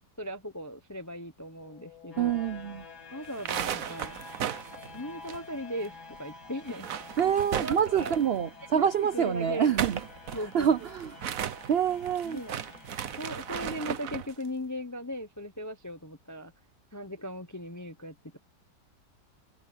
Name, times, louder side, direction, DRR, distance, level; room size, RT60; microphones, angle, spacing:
voice 1, 0.2-2.4 3.1-4.2 4.9-6.9 7.6-8.1 8.7-9.8 10.3-10.7 12.2-12.6 13.2-16.5 16.9-18.4, equal, 25° left, 0.4 m, -38 dB
sound 1, 1.4-14.4, left 4 dB, 75° left, 7.1 m, -49 dB
voice 2, 2.2-2.9 7.2-10.0 10.3-11.1 11.7-12.4, right 8 dB, 80° right, 0.5 m, -26 dB
sound 2, 3.2-5.9 6.1-6.2 6.6-8.4 9.5-14.3, right 9 dB, 60° right, 1.2 m, -36 dB
open air
omnidirectional pair, 1.8 m